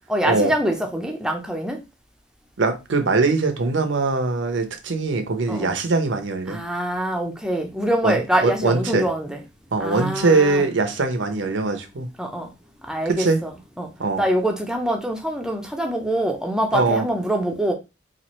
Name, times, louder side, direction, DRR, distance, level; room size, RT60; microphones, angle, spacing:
voice 1, 0.1-1.8 5.5-5.7 6.5-9.4 9.8-10.6 12.2-12.5 12.9-13.5 13.8-13.9 14.2-17.7, right 1 dB, 5° right, 0.6 m, -24 dB
voice 2, 2.6-6.6 8.0-9.1 9.7-12.1 13.1-13.4 14.0-14.2 16.7-17.1, right 3 dB, 75° right, 0.7 m, -22 dB
4.2 x 2.5 x 3.0 m
head